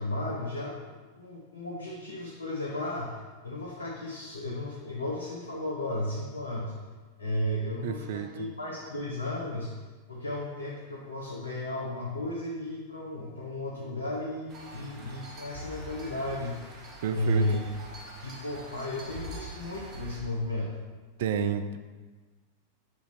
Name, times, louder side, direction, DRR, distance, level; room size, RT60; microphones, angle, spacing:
voice 1, 0.0-6.7 7.2-9.8 10.1-16.7 17.1-17.6 18.2-20.7 21.3-21.5, left 1 dB, 80° left, -3 dB, 0.8 m, -34 dB
voice 2, 7.8-8.5 17.0-17.6 21.2-21.8, right 8 dB, 55° right, 10 dB, 0.4 m, -31 dB
sound 1, 14.5-20.2, right 1 dB, 35° right, 1.2 m, -44 dB
6.0 x 4.1 x 4.4 m, 1.3 s
figure-of-eight pair, 90°, 0 cm